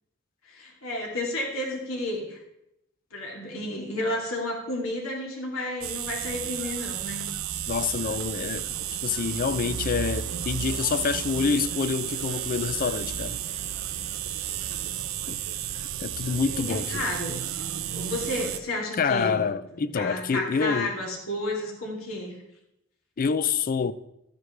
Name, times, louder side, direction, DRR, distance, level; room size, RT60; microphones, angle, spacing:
voice 1, 0.5-2.4 3.1-7.3 16.3-17.4 17.7-19.4 19.9-22.4, left 1 dB, 90° left, 2.9 m, -32 dB
sound 1, 5.8-18.6, right 10 dB, 85° right, 0.6 m, -32 dB
voice 2, 7.7-13.4 15.3-15.4 16.0-17.0 19.0-20.9 23.2-23.9, left 5 dB, 45° left, 0.4 m, -27 dB
12.5 x 9.4 x 3.3 m
head